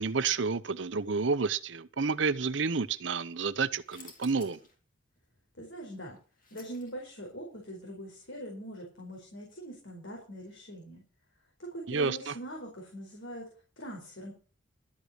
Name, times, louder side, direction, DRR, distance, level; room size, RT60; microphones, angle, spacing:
voice 1, 0.0-4.6 11.9-12.4, right 4 dB, 70° right, 0.7 m, -30 dB
sound 1, 3.8-4.8 5.2-5.3 5.9-7.3, left 4 dB, 45° left, 3.7 m, -54 dB
voice 2, 5.6-6.2 6.5-11.0 11.7-13.5 13.8-14.3, right 1 dB, 70° left, 4.4 m, -42 dB
13.0 x 8.2 x 6.5 m
head